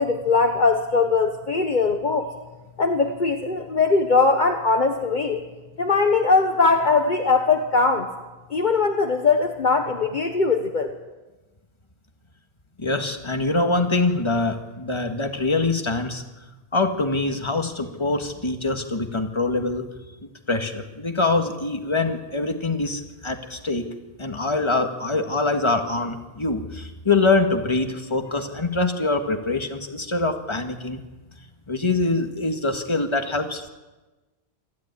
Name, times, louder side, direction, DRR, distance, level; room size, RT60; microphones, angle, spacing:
voice 1, 0.0-2.3 2.8-5.4 5.8-8.1 8.5-10.9, left 4 dB, 45° left, 4 dB, 1.4 m, -20 dB
voice 2, 12.8-16.2 16.7-19.9 20.2-23.9 24.2-31.0 31.7-33.7, left 3 dB, 25° left, 5 dB, 1.8 m, -24 dB
27.5 x 11.5 x 9.6 m, 1.2 s
omnidirectional pair, 1.1 m